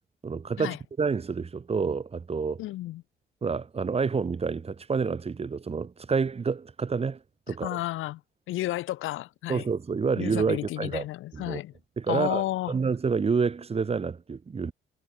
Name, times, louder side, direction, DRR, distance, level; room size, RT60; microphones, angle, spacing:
voice 1, 0.2-2.6 3.4-7.2 7.5-7.8 9.5-11.0 11.3-11.6 12.0-14.7, right 5 dB, 30° right, 1.2 m, -28 dB
voice 2, 2.6-3.0 7.5-8.2 8.5-9.7 10.1-11.7 12.1-12.8, left 15 dB, 90° left, 2.0 m, -32 dB
cardioid pair, 90°, 20 cm